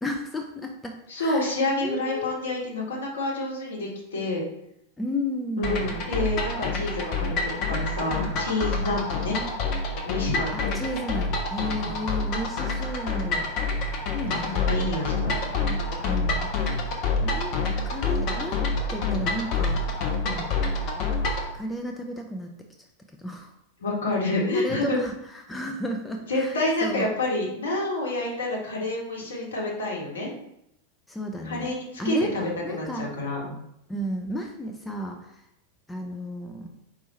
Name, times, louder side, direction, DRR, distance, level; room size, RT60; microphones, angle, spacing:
voice 1, 0.0-2.4 5.0-5.9 10.5-13.5 14.1-14.6 16.1-16.5 17.2-18.6 18.9-19.8 21.5-22.5 23.2-23.5 24.5-26.5 26.8-27.1 31.1-31.7 32.0-32.4 32.6-33.1 33.9-35.4 35.9-36.7, left 1 dB, 10° left, 2 dB, 0.4 m, -33 dB
voice 2, 1.1-4.4 5.6-9.4 10.0-10.5 11.8-12.0 13.7-15.7 20.2-20.5 23.8-25.0 26.3-30.3 31.4-33.5, left 2 dB, 65° left, -3 dB, 1.5 m, -28 dB
sound 1, 5.6-21.5, left 3 dB, 40° left, 0.7 m, -27 dB
4.7 x 2.6 x 4.2 m, 0.79 s
figure-of-eight pair, 90°, 0 cm